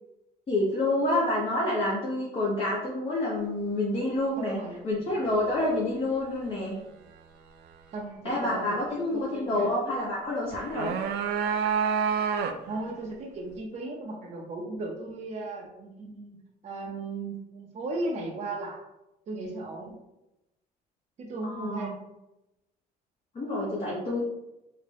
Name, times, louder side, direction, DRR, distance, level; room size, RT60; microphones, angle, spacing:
voice 1, 0.5-4.6 4.8-6.8 8.2-11.0 21.4-21.9 23.3-24.2, left 1 dB, 30° left, -5 dB, 0.9 m, -28 dB
voice 2, 4.4-4.8 7.9-8.7 9.1-9.7 12.7-18.8 19.3-19.9 21.2-22.0, right 2 dB, 45° right, -3 dB, 0.7 m, -36 dB
sound 1, 10.5-12.8, right 7 dB, 85° right, 0.4 m, -28 dB
3.8 x 2.1 x 3.3 m, 0.92 s
cardioid pair, 110°, 17 cm